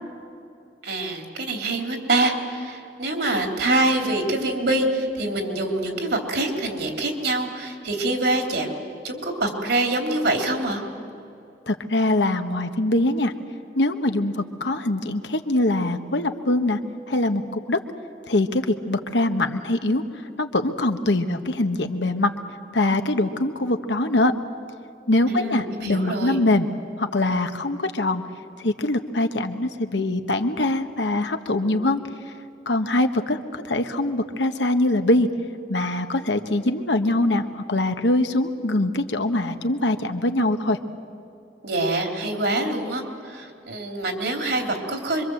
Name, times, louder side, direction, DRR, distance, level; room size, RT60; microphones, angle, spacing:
voice 1, 0.8-10.8 25.3-26.4 41.6-45.2, right 2 dB, 70° right, 3 dB, 3.5 m, -25 dB
voice 2, 11.7-13.3 13.7-16.8 17.1-17.8 18.3-20.0 20.4-22.3 22.7-24.3 25.1-26.7 27.0-28.2 28.6-32.0 32.7-35.3 35.7-40.8, left 1 dB, 80° left, 7 dB, 1.4 m, -23 dB
25.5 x 24.0 x 7.9 m, 2.6 s
head